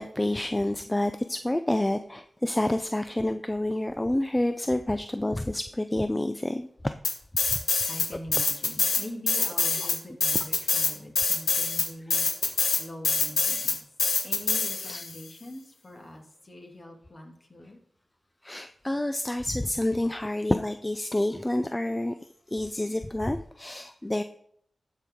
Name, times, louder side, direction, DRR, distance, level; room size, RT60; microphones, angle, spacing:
voice 1, 0.0-6.9 8.1-8.2 9.4-9.5 9.8-9.9 14.8-15.0 18.4-22.1 22.5-24.2, left 1 dB, 20° left, 9 dB, 0.4 m, -28 dB
sound 1, 7.0-8.1 8.3-15.1, left 4 dB, 90° left, 1.0 m, -25 dB
voice 2, 7.9-13.8 14.2-17.8, left 1 dB, 45° left, 1 dB, 2.2 m, -43 dB
12.0 x 4.6 x 3.7 m, 0.65 s
cardioid pair, 40°, 0 cm